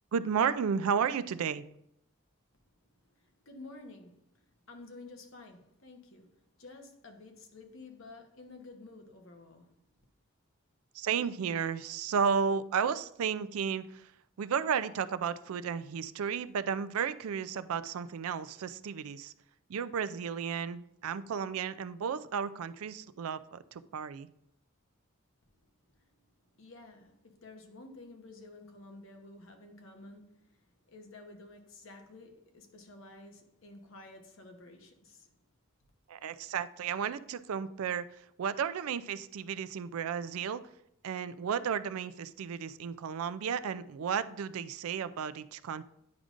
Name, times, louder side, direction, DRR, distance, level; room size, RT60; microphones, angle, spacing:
voice 1, 0.1-1.6 10.9-14.1 14.4-19.3 19.7-24.3 36.1-38.1 38.4-40.6 41.0-45.8, right 7 dB, 80° right, 14 dB, 0.4 m, -33 dB
voice 2, 3.2-9.8 26.6-30.6 30.9-35.3, left 2 dB, 65° left, 4 dB, 1.0 m, -51 dB
9.4 x 5.0 x 2.5 m, 0.76 s
head